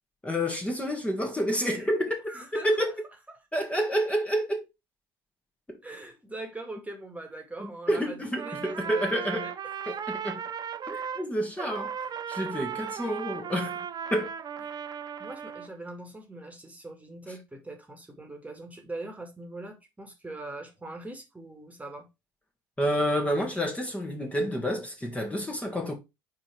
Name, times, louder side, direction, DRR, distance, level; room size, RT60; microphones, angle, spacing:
voice 1, 0.2-2.9 3.5-4.7 5.7-5.8 7.6-9.5 9.9-10.4 10.9-13.9 14.1-14.3 22.8-25.9, equal, 10° left, 1.9 m, -29 dB
voice 2, 2.3-2.9 3.3-3.4 5.8-9.5 14.7-14.8 15.2-22.1, right 2 dB, 10° right, 2.1 m, -41 dB
Trumpet, 8.3-11.3 11.6-15.7, right 8 dB, 35° right, 0.7 m, -36 dB
4.9 x 4.5 x 4.6 m
hypercardioid pair, 65°, 12 cm